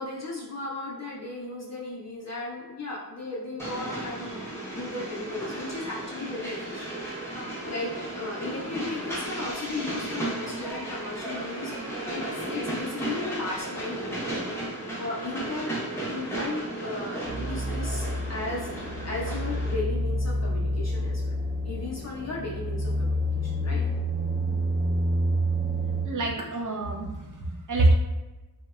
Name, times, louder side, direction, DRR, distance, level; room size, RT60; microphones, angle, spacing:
voice 1, 0.0-7.0 7.6-11.7 12.1-15.8 16.1-18.7 19.0-23.8, left 2 dB, 45° left, -4 dB, 0.6 m, -36 dB
Train, 3.6-19.7, right 1 dB, 5° left, 0.7 m, -34 dB
sound 1, 17.2-26.1, equal, 25° right, 0.8 m, -28 dB
voice 2, 26.0-27.9, right 2 dB, 55° right, -1 dB, 0.5 m, -25 dB
2.8 x 2.1 x 2.3 m, 1.1 s
wide cardioid pair, 70°, 37 cm